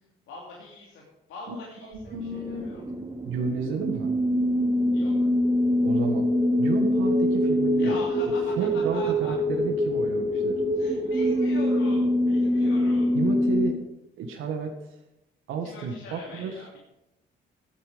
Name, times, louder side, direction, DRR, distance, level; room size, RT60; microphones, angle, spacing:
voice 1, 0.3-1.0 1.3-2.8 4.9-5.3 7.8-8.6 8.9-9.3 10.7-13.2 15.6-16.8, left 3 dB, 90° left, -4 dB, 3.0 m, -41 dB
voice 2, 1.8-2.7 3.2-4.1 5.8-6.3 6.6-8.0 8.6-10.6 13.1-13.8 14.2-14.7 15.5-16.6, right 4 dB, 90° right, 3 dB, 1.6 m, -32 dB
sound 1, 2.0-13.7, left 1 dB, 20° right, 2.6 m, -24 dB
15.5 x 8.9 x 5.1 m, 0.90 s
cardioid pair, 90°, 20 cm